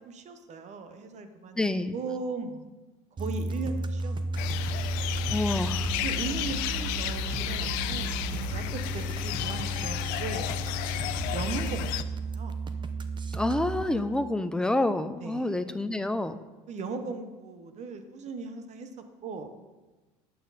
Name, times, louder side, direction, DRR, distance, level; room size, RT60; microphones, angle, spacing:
voice 1, 0.0-2.6 3.2-4.7 6.0-12.0 12.3-12.5 15.2-15.6 16.7-18.9 19.2-19.5, right 4 dB, 45° right, 8 dB, 1.1 m, -38 dB
voice 2, 1.6-1.9 5.3-5.9 13.3-16.4, left 2 dB, 5° left, 11 dB, 0.6 m, -28 dB
sound 1, 3.2-13.8, right 3 dB, 30° right, 0.8 m, -33 dB
sound 2, 4.4-12.0, left 14 dB, 75° left, 0.5 m, -32 dB
9.5 x 7.6 x 4.1 m, 1.2 s
supercardioid pair, 80°, 16 cm